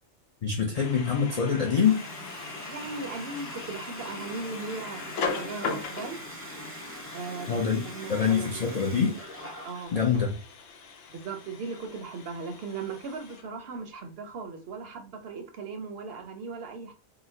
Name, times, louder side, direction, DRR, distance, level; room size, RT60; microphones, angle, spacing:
voice 1, 0.4-2.0 7.5-7.8 8.1-9.2 9.9-10.3, left 6 dB, 60° left, 0.4 m, -25 dB
sound 1, 0.7-13.9, left 5 dB, 90° left, 1.0 m, -40 dB
Water tap faucet, 1.8-10.3, equal, 15° right, 0.5 m, -42 dB
voice 2, 2.6-6.2 7.1-8.6 9.6-10.0 11.1-16.9, right 4 dB, 65° right, 0.7 m, -38 dB
3.8 x 2.0 x 2.6 m
omnidirectional pair, 1.3 m